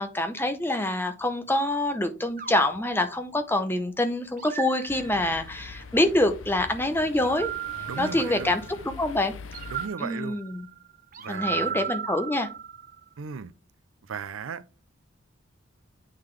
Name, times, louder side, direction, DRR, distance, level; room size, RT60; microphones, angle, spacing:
voice 1, 0.0-7.5 8.0-9.3 10.0-10.7 11.3-12.5, left 1 dB, 10° left, 0.6 m, -26 dB
sound 1, 2.4-3.7 4.4-5.6 7.1-8.9 9.5-13.0, right 8 dB, 40° right, 0.6 m, -36 dB
sound 2, 4.9-9.9, left 4 dB, 80° left, 0.6 m, -43 dB
voice 2, 7.9-8.5 9.7-10.4 11.2-11.9 13.2-13.5 14.0-14.6, right 5 dB, 90° right, 0.5 m, -36 dB
8.7 x 3.8 x 3.2 m
head